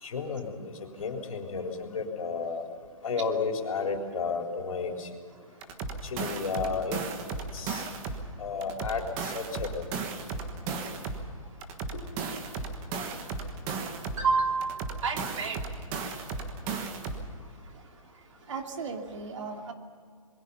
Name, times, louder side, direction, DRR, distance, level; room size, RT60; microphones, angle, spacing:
voice 1, 0.0-2.6 3.0-5.1 6.0-7.0 7.5-7.9 8.4-9.8 11.9-12.0, left 5 dB, 70° left, 3 dB, 4.0 m, -32 dB
sound 1, 5.6-8.3 8.6-11.3 11.6-14.3 14.6-17.3, right 4 dB, 15° right, 1.4 m, -35 dB
voice 2, 14.2-15.6 18.5-19.7, right 4 dB, 60° right, 4 dB, 2.8 m, -30 dB
26.0 x 22.0 x 5.7 m, 2.1 s
hypercardioid pair, 175°, 18 cm